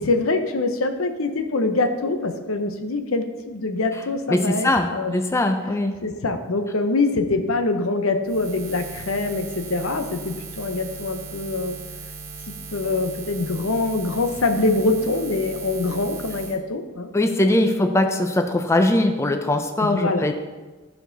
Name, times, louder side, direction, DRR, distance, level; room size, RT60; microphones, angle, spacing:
voice 1, 0.0-5.1 6.0-11.8 12.7-17.1 19.8-20.3, left 3 dB, 75° left, 7 dB, 0.8 m, -24 dB
voice 2, 4.3-6.0 17.1-20.3, left 1 dB, 15° left, 5 dB, 0.5 m, -21 dB
Buzz, 8.2-16.6, right 4 dB, 80° right, 1.2 m, -38 dB
13.5 x 4.6 x 4.0 m, 1.3 s
head